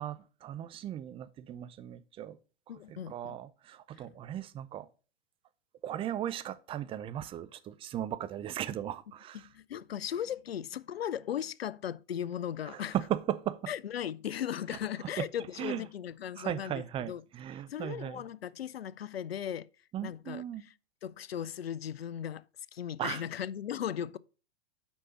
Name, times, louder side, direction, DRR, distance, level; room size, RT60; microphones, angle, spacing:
voice 1, 0.0-2.4 2.9-4.9 5.8-9.5 12.7-13.7 15.0-15.3 15.6-15.8 16.4-18.2 19.9-20.6 23.0-23.2, right 11 dB, 20° right, 0.5 m, -37 dB
voice 2, 2.7-3.4 4.0-4.1 9.4-13.0 13.7-17.2 17.7-19.7 20.0-20.7 21.0-22.4 22.7-24.2, left 9 dB, 90° left, 0.5 m, -37 dB
6.3 x 5.5 x 5.6 m
hypercardioid pair, 110°, 29 cm